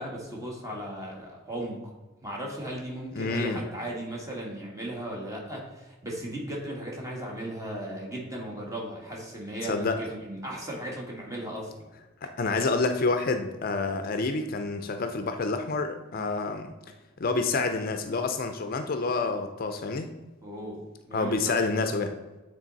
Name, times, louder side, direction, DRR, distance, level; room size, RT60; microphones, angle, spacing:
voice 1, 0.0-1.9 2.2-11.8 16.1-16.4 20.4-21.6, right 1 dB, 15° right, -2 dB, 1.7 m, -36 dB
voice 2, 3.2-3.6 9.6-10.0 12.2-16.7 17.2-20.1 21.1-22.1, left 3 dB, 50° left, 7 dB, 0.5 m, -28 dB
8.9 x 3.9 x 4.0 m, 1.1 s
head